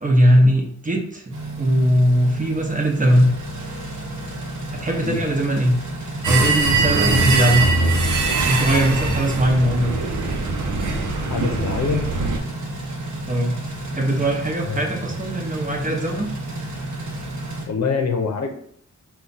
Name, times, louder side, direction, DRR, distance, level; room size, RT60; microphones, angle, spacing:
voice 1, 0.0-3.3 4.7-5.8 6.2-7.6 8.3-9.9 13.3-13.6 13.9-16.3, equal, 25° right, 1 dB, 0.8 m, -19 dB
sound 1, 1.3-17.7, right 1 dB, 70° right, 1.1 m, -32 dB
sound 2, 6.2-12.4, right 3 dB, 85° right, 0.7 m, -22 dB
voice 2, 11.3-12.1 14.6-14.9 17.7-18.5, left 5 dB, 65° left, 3 dB, 0.7 m, -24 dB
4.5 x 2.3 x 3.9 m, 0.64 s
wide cardioid pair, 115°, 29 cm